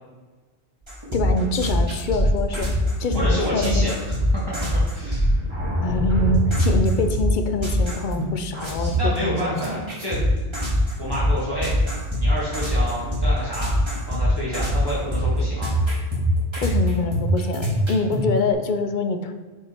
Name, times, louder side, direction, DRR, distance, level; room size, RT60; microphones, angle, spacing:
sound 1, 0.8-8.2 8.5-18.2, equal, 25° right, 1.6 m, -22 dB
voice 1, 1.1-3.9 5.8-9.6 16.6-19.3, left 2 dB, 55° left, 8 dB, 0.6 m, -25 dB
voice 2, 3.1-4.2 4.9-5.3 9.0-10.2 11.0-11.8 12.2-15.7, left 1 dB, 20° left, -7 dB, 1.4 m, -29 dB
5.4 x 4.8 x 4.3 m, 1.3 s
omnidirectional pair, 1.1 m